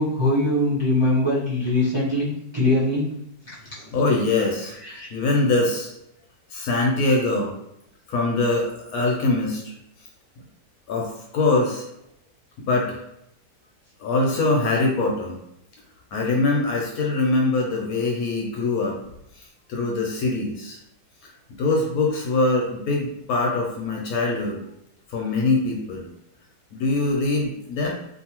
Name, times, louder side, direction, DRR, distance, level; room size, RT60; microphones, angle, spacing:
voice 1, 0.0-3.0 4.8-5.1, left 1 dB, 40° right, -9 dB, 0.3 m, -22 dB
voice 2, 3.9-5.9 6.5-7.5 8.1-9.6 10.9-11.8 12.6-13.0 14.0-15.4 16.1-19.0 19.7-20.8 21.6-24.6 25.1-26.1 26.7-27.9, left 2 dB, 70° left, -1 dB, 0.9 m, -23 dB
2.7 x 2.4 x 2.8 m, 0.78 s
omnidirectional pair, 1.9 m